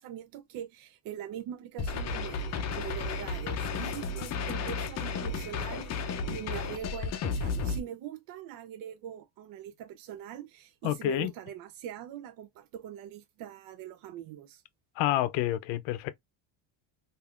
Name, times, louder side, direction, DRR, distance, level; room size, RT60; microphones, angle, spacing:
voice 1, 0.0-14.6, right 10 dB, 50° right, 0.4 m, -42 dB
sound 1, 1.8-7.8, left 4 dB, 35° left, 0.6 m, -33 dB
voice 2, 10.8-11.3 15.0-16.1, left 14 dB, 80° left, 0.6 m, -28 dB
3.4 x 2.5 x 2.3 m
cardioid pair, 130°, 45 cm